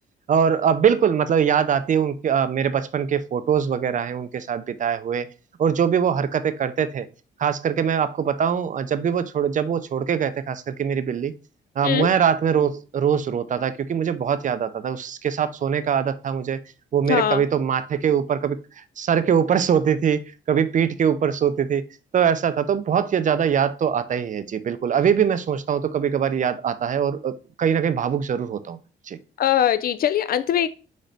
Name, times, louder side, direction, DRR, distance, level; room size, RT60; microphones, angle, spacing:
voice 1, 0.3-5.3 5.6-7.1 7.4-11.3 11.8-16.6 16.9-18.6 19.0-20.2 20.5-21.8 22.1-28.8 29.1-29.2, right 8 dB, 40° right, 0.5 m, -22 dB
voice 2, 17.1-17.4 29.4-30.7, left 10 dB, 50° left, 0.4 m, -21 dB
4.1 x 3.9 x 3.3 m
cardioid pair, 90°, 20 cm